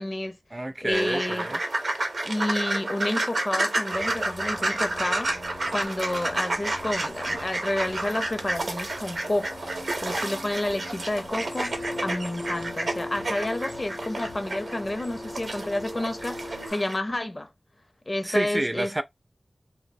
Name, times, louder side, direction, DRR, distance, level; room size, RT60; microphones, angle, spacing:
voice 1, 0.0-0.4 0.8-1.5 2.2-5.3 5.7-9.6 10.0-17.5 18.1-18.9, left 1 dB, 35° left, 0.5 m, -30 dB
voice 2, 0.5-1.6 18.2-19.0, right 1 dB, 30° right, 0.3 m, -28 dB
sound 1, 0.9-17.0, right 2 dB, 75° right, 0.6 m, -31 dB
sound 2, 3.9-16.7, left 2 dB, 75° left, 0.9 m, -41 dB
2.7 x 2.1 x 2.5 m
wide cardioid pair, 60°, 0 cm